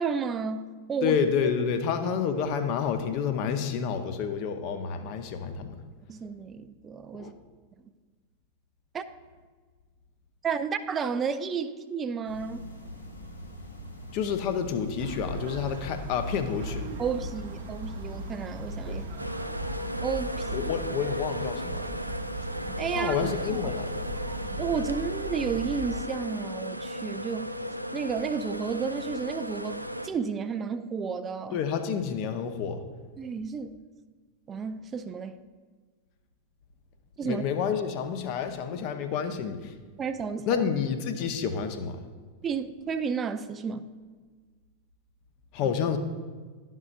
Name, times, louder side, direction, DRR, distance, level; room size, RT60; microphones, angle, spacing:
voice 1, 0.0-1.2 6.1-7.3 8.9-9.0 10.4-12.6 17.0-19.1 20.0-20.7 22.8-23.6 24.6-27.6 27.9-31.6 33.2-33.8 34.5-35.4 37.2-37.4 40.0-40.6 42.4-43.8, right 6 dB, 25° right, 10 dB, 0.4 m, -32 dB
voice 2, 1.0-5.8 7.1-7.3 14.1-16.9 18.9-19.0 20.5-22.0 22.9-24.0 31.5-32.8 37.2-39.7 40.5-42.0 45.5-46.0, left 7 dB, 40° left, 7 dB, 0.7 m, -29 dB
sound 1, 12.2-24.5, left 1 dB, 85° left, 1.2 m, -43 dB
sound 2, 15.0-26.0, right 1 dB, 60° right, 1.0 m, -38 dB
sound 3, 19.2-30.1, equal, 90° right, 0.3 m, -36 dB
11.5 x 5.5 x 2.5 m, 1.4 s
figure-of-eight pair, 90°, 0 cm